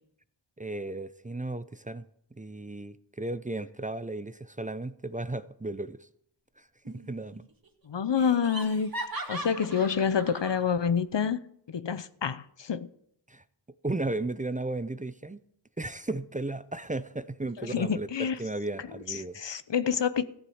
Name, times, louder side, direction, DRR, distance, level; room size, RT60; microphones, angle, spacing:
voice 1, 0.6-2.1 2.3-6.1 6.6-7.4 13.3-13.4 13.8-15.4 15.8-19.4, right 2 dB, 15° right, 0.6 m, -35 dB
Laughter, 6.8-7.4 7.7-7.8 8.2-10.6, right 1 dB, 50° right, 2.0 m, -39 dB
voice 2, 7.9-8.9 9.3-11.4 11.7-12.9 17.6-18.4 19.1-20.2, left 7 dB, 70° left, 0.8 m, -28 dB
14.0 x 8.2 x 7.1 m
cardioid pair, 40°, 44 cm